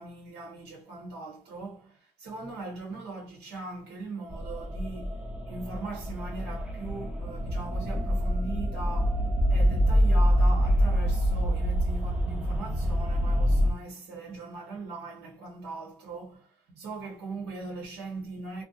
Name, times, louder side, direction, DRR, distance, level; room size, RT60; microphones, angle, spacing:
voice 1, 0.0-5.1 5.5-18.6, right 3 dB, 80° right, 0.9 m, -40 dB
sound 1, 4.3-13.7, equal, 5° right, 0.6 m, -26 dB
2.7 x 2.0 x 2.7 m
cardioid pair, 110°, 17 cm